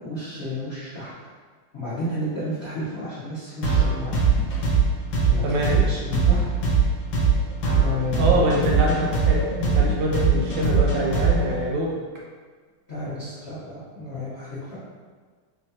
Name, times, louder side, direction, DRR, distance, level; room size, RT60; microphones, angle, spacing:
voice 1, 0.0-1.1 1.7-4.1 5.3-6.4 7.7-8.4 12.9-14.6, left 1 dB, 85° left, -11 dB, 0.5 m, -31 dB
sound 1, 3.6-11.6, right 5 dB, 65° left, 1.3 m, -20 dB
voice 2, 5.4-5.7 8.1-9.4 9.7-11.9, right 1 dB, 75° right, -3 dB, 1.2 m, -24 dB
4.5 x 2.3 x 2.7 m, 1.5 s
omnidirectional pair, 2.4 m